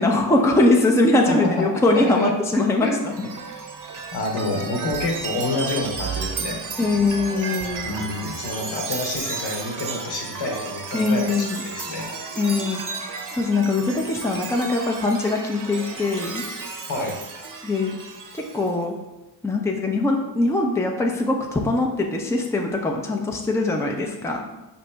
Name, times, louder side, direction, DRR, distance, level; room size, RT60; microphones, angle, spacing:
voice 1, 0.0-2.9 3.2-3.3 6.8-7.9 10.9-11.6 12.4-16.4 17.6-17.9 18.3-18.9 19.4-24.5, left 2 dB, 5° left, 1 dB, 0.6 m, -22 dB
voice 2, 1.3-2.9 4.1-6.6 7.8-12.1 16.9-17.1, left 2 dB, 65° left, 0 dB, 1.3 m, -28 dB
Chime, 2.9-18.7, right 4 dB, 40° right, 0.8 m, -33 dB
5.1 x 2.9 x 3.3 m, 1.0 s
supercardioid pair, 55°, 49 cm